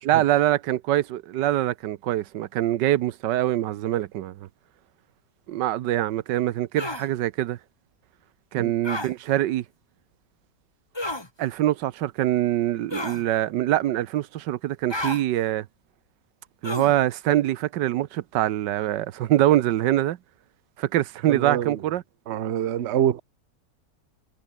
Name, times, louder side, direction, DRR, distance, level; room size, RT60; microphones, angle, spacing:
voice 1, 0.0-4.3 5.5-7.6 8.5-9.6 11.4-15.7 16.6-20.2 20.8-22.0, right 13 dB, 90° right, 1.4 m, -24 dB
sound 1, 6.8-7.1 8.8-9.1 10.9-11.3 12.9-13.2 14.9-15.2 16.6-17.0, left 1 dB, 15° left, 2.6 m, -31 dB
voice 2, 21.3-21.8 22.3-23.2, right 10 dB, 50° right, 0.9 m, -26 dB
omnidirectional pair, 1.8 m